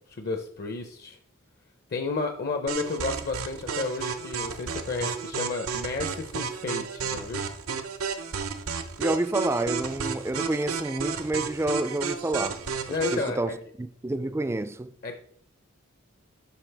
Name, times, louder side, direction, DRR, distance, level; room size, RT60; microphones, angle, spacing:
voice 1, 0.1-1.2 1.9-7.4 12.9-13.5 15.0-15.2, left 3 dB, 50° left, 0.6 m, -32 dB
sound 1, 2.7-13.3, right 5 dB, 90° right, 0.8 m, -32 dB
voice 2, 9.0-12.6 12.9-14.9, right 2 dB, 10° right, 0.3 m, -29 dB
12.0 x 4.6 x 3.4 m
head